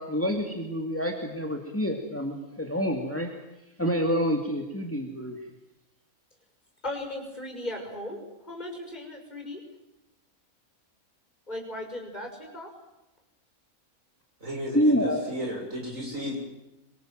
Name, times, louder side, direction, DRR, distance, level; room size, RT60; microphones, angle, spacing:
voice 1, 0.0-3.3 3.8-5.4 14.7-15.3, equal, 10° left, 3 dB, 2.5 m, -27 dB
voice 2, 6.8-9.6 11.5-12.7, left 1 dB, 30° left, 2 dB, 6.3 m, -37 dB
voice 3, 14.4-16.4, equal, 65° right, 0 dB, 7.6 m, -34 dB
27.5 x 23.0 x 7.6 m, 0.94 s
omnidirectional pair, 1.5 m